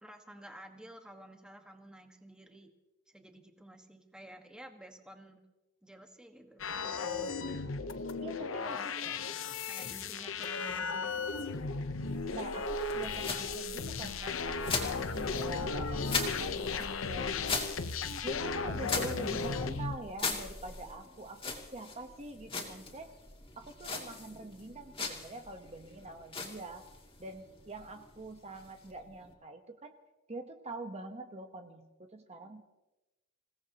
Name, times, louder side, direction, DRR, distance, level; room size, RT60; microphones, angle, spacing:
voice 1, 0.0-2.7 3.1-5.4 5.8-7.4 8.6-11.4, right 1 dB, 5° right, 4 dB, 1.5 m, -52 dB
sound 1, 6.6-20.0, left 4 dB, 80° left, 0.9 m, -35 dB
voice 2, 8.2-8.9 12.3-17.7 18.2-23.2 23.6-26.9 27.2-30.0 30.3-32.6, right 2 dB, 35° right, 5 dB, 1.1 m, -45 dB
sound 2, 12.1-29.3, left 4 dB, 25° left, 2.6 m, -41 dB
27.5 x 17.5 x 2.9 m, 1.1 s
head